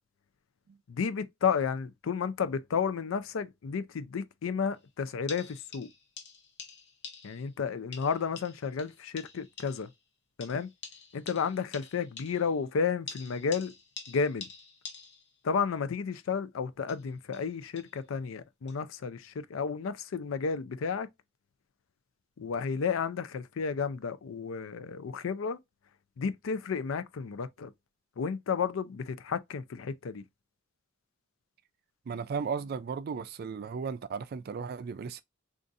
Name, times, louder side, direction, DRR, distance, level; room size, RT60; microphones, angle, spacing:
voice 1, 0.9-5.9 7.2-9.9 10.4-10.7 11.1-13.7 14.1-14.5 15.4-21.1 22.4-25.6 26.2-27.7 28.2-30.2, left 6 dB, 80° left, 0.4 m, -32 dB
sound 1, 4.8-4.9 5.3-7.6 7.9-10.0 10.4-12.6 13.1-15.4 16.8-18.0 18.7-18.8, left 5 dB, 60° left, 0.9 m, -47 dB
voice 2, 32.1-35.2, right 5 dB, 50° right, 0.3 m, -35 dB
3.9 x 2.5 x 2.5 m
head